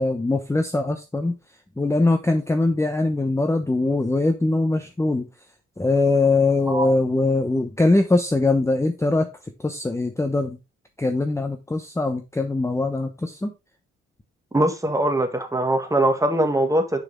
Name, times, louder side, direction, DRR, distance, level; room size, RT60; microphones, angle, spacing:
voice 1, 0.0-1.3 1.8-5.3 5.8-9.3 9.6-10.6 11.0-13.5, left 2 dB, 10° left, 0.9 m, -22 dB
voice 2, 14.5-17.0, right 1 dB, 10° right, 1.8 m, -22 dB
6.5 x 6.1 x 3.7 m
cardioid pair, 90°, 30 cm